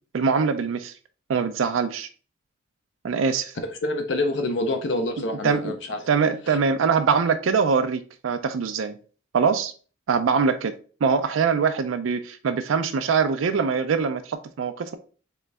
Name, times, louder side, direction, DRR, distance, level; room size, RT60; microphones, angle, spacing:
voice 1, 0.1-0.9 1.3-2.1 3.0-3.5 5.4-5.7 6.1-8.9 9.3-9.7 10.1-10.7 11.0-15.0, right 5 dB, 85° right, 0.4 m, -23 dB
voice 2, 3.6-6.1 6.5-6.6, left 2 dB, 60° left, 0.5 m, -27 dB
3.8 x 3.1 x 3.3 m
head